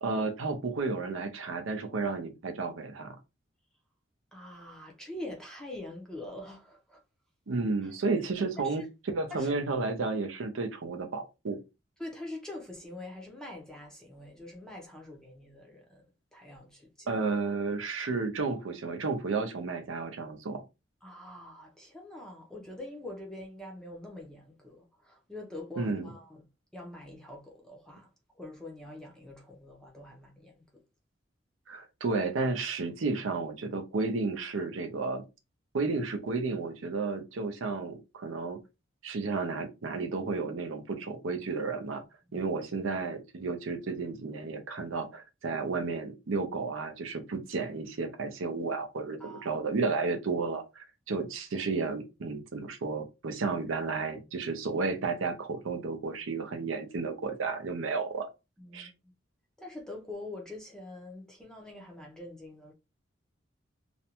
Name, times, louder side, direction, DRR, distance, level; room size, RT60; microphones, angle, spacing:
voice 1, 0.0-3.2 7.5-8.8 9.1-11.6 17.1-20.6 25.8-26.1 31.7-35.2 35.7-38.6 39.0-42.0 42.3-58.3 58.7-58.9, right 4 dB, 90° right, 0.6 m, -32 dB
voice 2, 4.3-7.0 7.8-7.9 8.6-8.9 9.3-9.5 12.0-16.0 16.3-17.1 21.0-26.4 26.7-28.1 28.3-30.7 42.3-42.4 49.2-49.6 58.6-59.1 59.6-62.7, left 1 dB, 5° left, 0.5 m, -44 dB
2.5 x 2.1 x 2.8 m
head